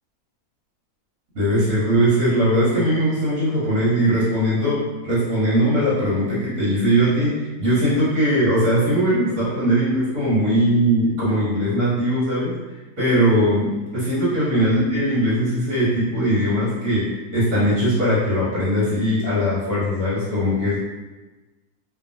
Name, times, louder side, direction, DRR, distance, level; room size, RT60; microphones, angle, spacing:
voice 1, 1.3-12.5 13.0-17.1 17.3-20.8, equal, 70° right, -10 dB, 1.4 m, -20 dB
2.8 x 2.2 x 2.5 m, 1.2 s
omnidirectional pair, 1.6 m